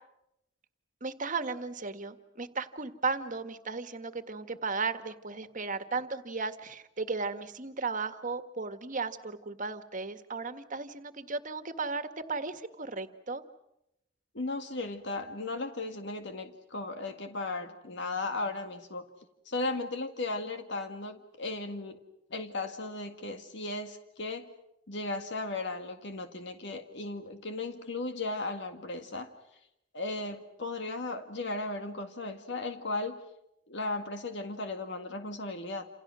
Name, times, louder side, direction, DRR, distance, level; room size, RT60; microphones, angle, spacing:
voice 1, 1.0-13.4, right 4 dB, 45° right, 9 dB, 1.7 m, -35 dB
voice 2, 14.3-19.1 19.5-22.0 22.3-24.5 24.9-29.3 29.9-33.2 33.7-35.9, left 2 dB, 65° left, 6 dB, 2.0 m, -36 dB
29.0 x 28.5 x 6.3 m, 0.84 s
head